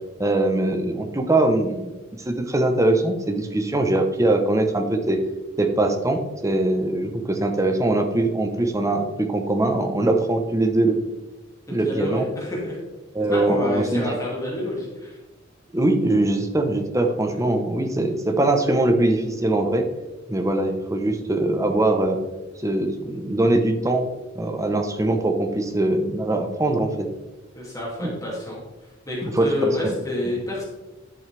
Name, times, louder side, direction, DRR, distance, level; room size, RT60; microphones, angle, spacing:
voice 1, 0.2-5.2 5.6-11.0 11.7-12.3 13.1-14.2 15.7-19.9 20.3-22.2 22.6-24.1 24.3-27.1 28.0-28.1 29.2-29.9, right 2 dB, 15° right, 5 dB, 0.9 m, -22 dB
voice 2, 11.7-12.8 13.2-15.2 27.5-28.6 29.1-30.7, left 1 dB, 15° left, -5 dB, 2.3 m, -28 dB
10.5 x 6.3 x 3.3 m, 1.1 s
head